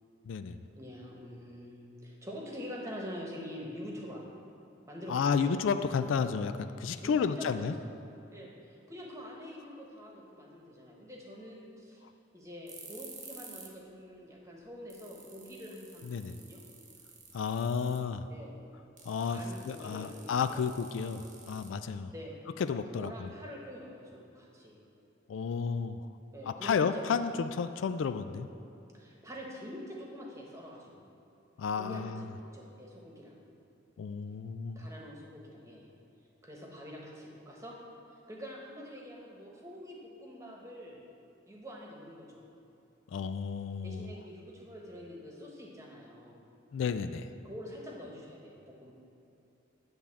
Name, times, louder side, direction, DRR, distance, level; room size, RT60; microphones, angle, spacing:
voice 1, 0.3-0.6 5.1-7.7 16.0-16.4 17.3-18.3 19.1-19.4 19.7-22.1 22.6-23.3 25.3-26.0 26.5-28.5 31.6-32.2 34.0-34.8 43.1-44.1 46.7-47.3, left 6 dB, 70° left, 10 dB, 0.3 m, -32 dB
voice 2, 0.8-4.3 4.9-5.6 6.9-7.5 8.3-12.0 12.3-16.6 18.3-18.5 19.1-20.7 22.1-22.4 22.9-24.8 26.3-27.1 28.9-31.0 31.7-33.4 34.7-35.9 36.4-37.7 38.1-41.0 41.5-42.4 43.8-46.4 47.4-48.9, equal, 15° right, -2 dB, 1.1 m, -46 dB
sound 1, 12.7-13.8 14.1-14.2 14.6-14.7 14.9-18.1 19.0-22.1, right 5 dB, 40° right, 1.0 m, -51 dB
9.7 x 3.5 x 7.1 m, 2.8 s
head